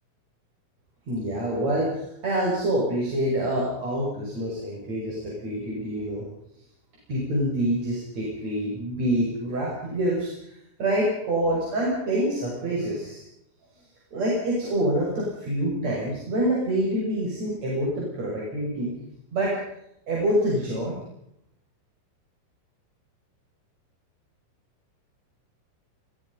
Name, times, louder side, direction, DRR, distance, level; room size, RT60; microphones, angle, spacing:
voice 1, 1.1-6.2 7.1-13.2 14.1-18.9 19.3-19.6 20.1-21.0, right 1 dB, 35° right, -4 dB, 7.3 m, -26 dB
28.5 x 24.0 x 5.6 m, 0.78 s
omnidirectional pair, 5.8 m